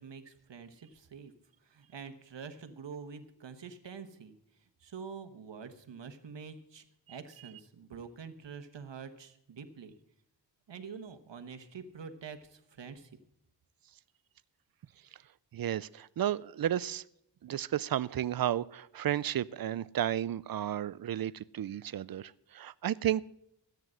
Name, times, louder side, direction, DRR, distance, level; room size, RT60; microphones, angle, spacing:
voice 1, 0.0-1.3 1.6-10.0 10.7-13.1, right 6 dB, 85° right, 1.2 m, -46 dB
voice 2, 15.5-17.0 17.4-23.2, right 11 dB, 55° right, 0.5 m, -33 dB
13.5 x 9.2 x 6.3 m
wide cardioid pair, 100°, 42 cm